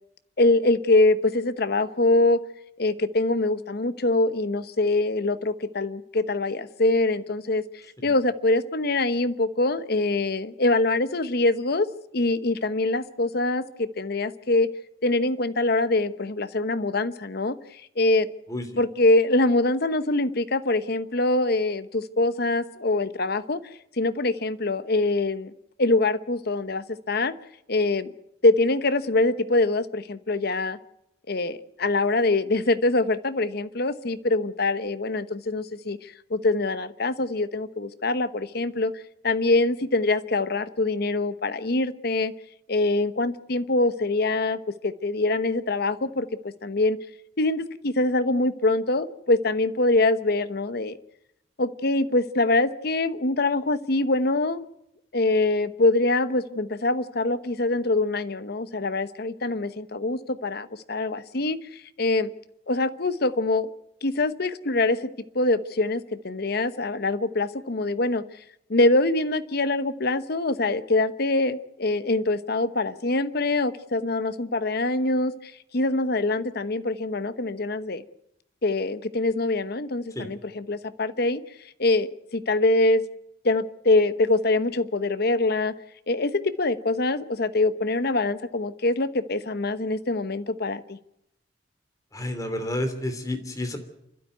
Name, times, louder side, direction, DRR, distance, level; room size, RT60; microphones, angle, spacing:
voice 1, 0.4-2.4 2.8-7.6 8.0-11.9 12.1-14.7 15.0-18.3 18.8-23.6 24.0-25.5 25.8-27.3 27.7-28.1 28.4-30.8 31.3-42.3 42.7-46.3 46.6-47.0 47.4-50.9 51.6-54.6 55.1-62.3 62.7-63.7 64.0-65.0 65.3-68.2 68.7-78.0 78.6-81.4 81.8-83.0 83.4-85.7 86.1-91.0, left 2 dB, 60° left, 12 dB, 1.0 m, -24 dB
voice 2, 92.1-93.8, left 1 dB, 20° left, 6 dB, 3.1 m, -30 dB
28.0 x 12.5 x 9.3 m, 0.82 s
head